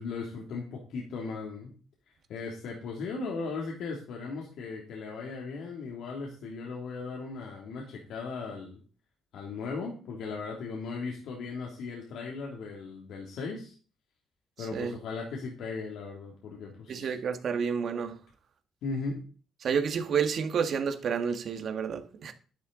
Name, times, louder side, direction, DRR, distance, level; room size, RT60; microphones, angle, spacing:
voice 1, 0.0-1.7 2.3-8.8 9.3-13.7 14.6-17.2 18.8-19.2, left 4 dB, 80° left, 2.9 m, -37 dB
voice 2, 16.9-18.1 19.6-22.3, right 6 dB, 60° right, 1.9 m, -30 dB
11.0 x 10.5 x 4.0 m
cardioid pair, 90°, 0 cm